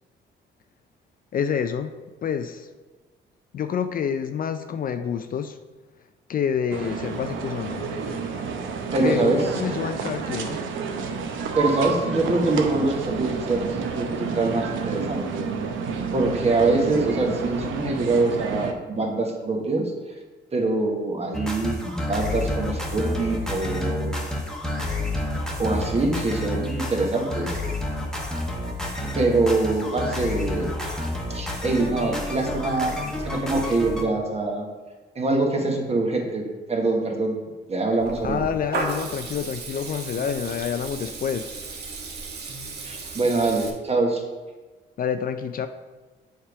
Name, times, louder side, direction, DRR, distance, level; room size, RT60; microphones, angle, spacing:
voice 1, 1.3-2.7 3.5-5.6 6.3-7.9 9.0-10.6 38.2-41.5 45.0-45.7, left 7 dB, 45° left, 9 dB, 0.4 m, -28 dB
sound 1, 6.7-18.7, right 5 dB, 80° right, 0.7 m, -30 dB
voice 2, 8.9-9.4 11.5-15.5 16.1-19.9 20.5-24.1 25.6-27.6 29.0-31.0 31.3-34.7 35.1-37.4 37.7-38.4 42.8-44.2, right 2 dB, 30° right, 1 dB, 1.3 m, -24 dB
sound 2, 21.3-34.0, left 1 dB, 5° left, 1.1 m, -29 dB
Water tap faucet / Liquid, 38.0-43.7, right 3 dB, 55° right, 1.1 m, -34 dB
7.3 x 3.6 x 4.7 m, 1.3 s
cardioid pair, 90°, 20 cm